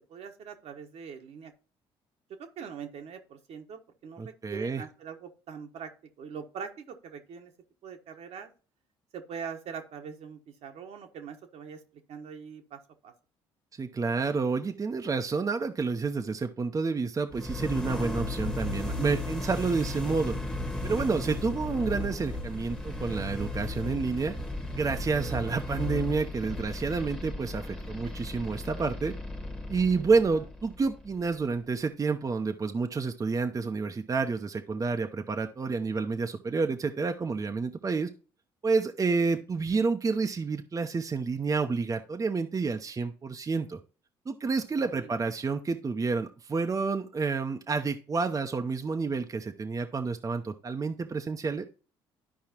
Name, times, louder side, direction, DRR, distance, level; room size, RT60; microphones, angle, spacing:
voice 1, 0.0-1.5 2.4-5.9 6.2-7.5 7.8-8.5 9.1-11.8 12.1-13.1 27.8-28.1 30.1-30.2 44.9-45.1, right 6 dB, 65° right, 5 dB, 1.2 m, -43 dB
voice 2, 4.2-4.8 13.8-20.4 20.8-24.3 24.8-29.1 29.7-38.1 38.6-43.8 44.3-51.7, right 4 dB, 30° right, 5 dB, 0.7 m, -29 dB
sound 1, 17.3-31.2, left 2 dB, 5° left, 1.3 m, -35 dB
12.5 x 4.7 x 2.9 m, 0.37 s
hypercardioid pair, 60°, 12 cm